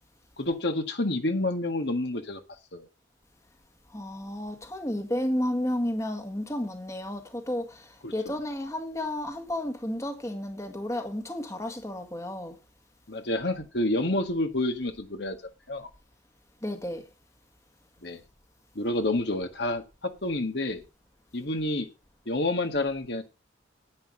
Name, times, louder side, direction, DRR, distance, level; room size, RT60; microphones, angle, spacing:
voice 1, 0.4-2.4 2.7-2.9 8.0-8.3 13.1-15.4 15.7-15.9 18.0-18.2 18.7-20.8 21.3-21.9 22.2-23.2, left 2 dB, 60° left, 1.7 m, -29 dB
voice 2, 3.9-12.6 16.6-17.0, left 1 dB, 15° left, 1.7 m, -32 dB
10.5 x 9.6 x 5.0 m
head